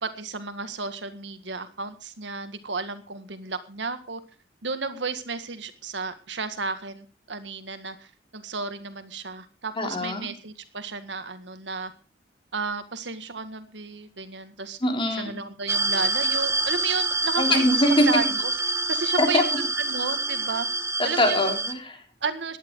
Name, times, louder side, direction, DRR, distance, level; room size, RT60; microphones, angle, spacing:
voice 1, 0.0-4.2 4.6-11.9 12.5-14.8 15.2-18.4 18.9-20.7 21.0-21.4 22.2-22.6, right 4 dB, 80° right, 10 dB, 1.8 m, -32 dB
voice 2, 9.8-10.3 14.8-15.4 17.4-18.1 19.2-19.4 21.0-22.0, left 1 dB, 30° left, 3 dB, 3.8 m, -23 dB
sound 1, 15.7-21.7, right 2 dB, 15° right, 1.3 m, -26 dB
17.5 x 11.5 x 4.7 m, 0.35 s
head